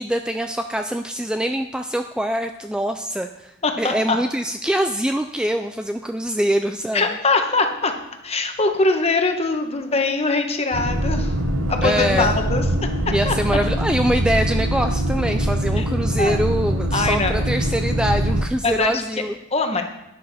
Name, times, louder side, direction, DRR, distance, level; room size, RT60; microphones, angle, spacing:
voice 1, 0.0-7.0 11.8-12.3 13.1-19.3, right 1 dB, 5° right, 6 dB, 0.3 m, -24 dB
voice 2, 3.6-4.2 6.9-7.9 8.2-11.3 11.7-12.6 13.2-13.3 15.8-15.9 16.2-16.4 16.9-17.3 18.6-19.0 19.5-19.8, left 3 dB, 30° left, 5 dB, 1.2 m, -22 dB
sound 1, 10.7-18.4, right 1 dB, 80° right, 1.2 m, -23 dB
11.5 x 10.0 x 4.2 m, 0.90 s
head